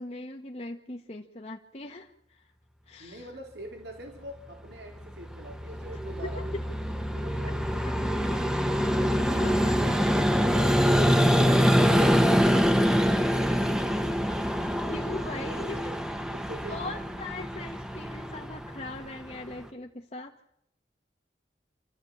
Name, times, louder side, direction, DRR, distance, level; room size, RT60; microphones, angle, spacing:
voice 1, 0.0-2.5 2.9-3.3 6.0-6.5 9.3-9.8 14.9-15.9 16.7-20.3, left 2 dB, 40° left, 2 dB, 1.3 m, -40 dB
voice 2, 3.0-6.5 7.1-8.2 9.3-12.7 15.3-15.9 16.3-17.0, right 1 dB, 70° right, 3 dB, 4.2 m, -44 dB
Vehicle, 4.9-19.6, equal, 5° right, 1.4 m, -25 dB
27.5 x 14.0 x 8.6 m, 0.76 s
head